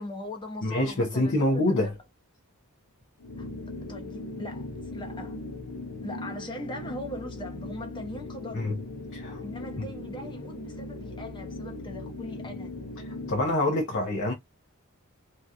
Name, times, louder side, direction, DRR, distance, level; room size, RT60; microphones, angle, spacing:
voice 1, 0.0-2.0 3.4-3.5 3.9-5.4 6.0-8.8 9.4-12.7, left 1 dB, 20° left, 0.9 m, -40 dB
voice 2, 0.6-1.9 8.5-8.8 9.1-9.4 9.8-9.9 13.3-14.3, left 1 dB, 60° left, 0.9 m, -26 dB
sound 1, 3.2-13.6, left 2 dB, 85° left, 0.8 m, -39 dB
3.0 x 2.7 x 2.3 m
head